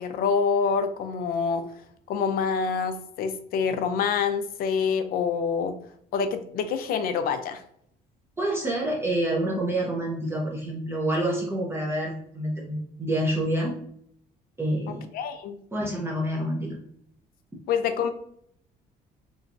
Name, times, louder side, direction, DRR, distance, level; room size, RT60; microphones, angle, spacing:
voice 1, 0.0-1.7 2.1-5.8 6.1-7.6 14.9-15.6 17.7-18.1, left 6 dB, 60° left, 9 dB, 0.4 m, -26 dB
voice 2, 8.4-13.7 14.6-15.0 15.7-16.8, right 1 dB, 15° right, -3 dB, 0.6 m, -27 dB
2.9 x 2.3 x 2.5 m, 0.67 s
cardioid pair, 110°, 17 cm